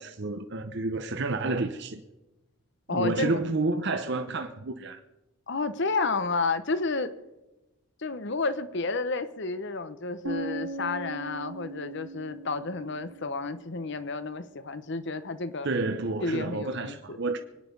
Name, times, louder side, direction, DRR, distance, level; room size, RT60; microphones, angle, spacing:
voice 1, 0.0-2.0 2.9-5.0 15.6-17.4, right 3 dB, 55° right, 0.8 m, -30 dB
voice 2, 2.9-3.4 5.5-7.1 8.0-15.7 16.2-17.2, left 3 dB, 55° left, 0.9 m, -31 dB
sound 1, 10.2-14.2, right 2 dB, 80° right, 3.5 m, -39 dB
24.0 x 10.0 x 5.3 m
head